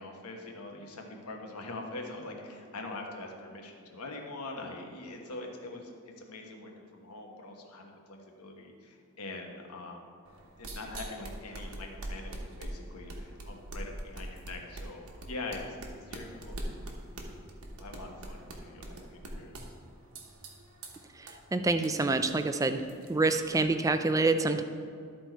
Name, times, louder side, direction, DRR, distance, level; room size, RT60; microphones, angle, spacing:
voice 1, 0.0-10.0 10.6-16.6 17.8-19.7, left 2 dB, 85° left, 1 dB, 1.2 m, -43 dB
sound 1, 10.2-24.0, right 1 dB, 75° right, 1.2 m, -44 dB
voice 2, 21.2-22.8 23.1-24.6, right 3 dB, 15° right, 8 dB, 0.3 m, -27 dB
13.0 x 4.3 x 4.5 m, 2.2 s
head